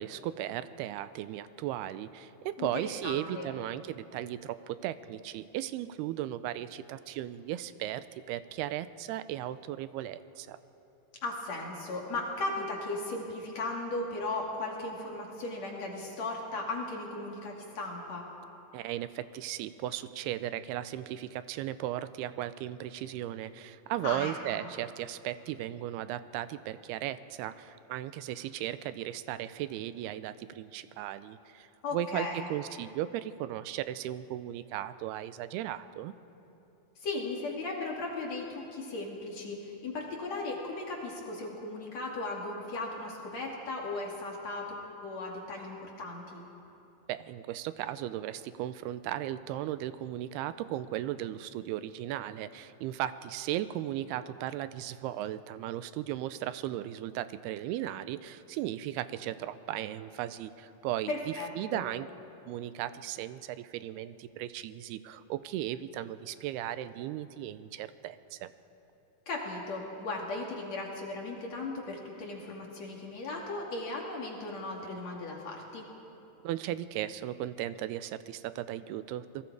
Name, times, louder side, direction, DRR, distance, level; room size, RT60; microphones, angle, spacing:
voice 1, 0.0-10.6 18.7-36.1 47.1-62.1 62.5-68.5 76.4-79.4, right 12 dB, 90° right, 13 dB, 2.6 m, -36 dB
voice 2, 3.0-3.5 11.2-18.3 24.0-24.3 24.6-24.7 31.8-32.5 37.0-46.4 61.1-61.9 69.3-75.9, left 2 dB, 50° left, -1 dB, 3.1 m, -37 dB
27.5 x 21.5 x 4.8 m, 2.8 s
omnidirectional pair, 4.5 m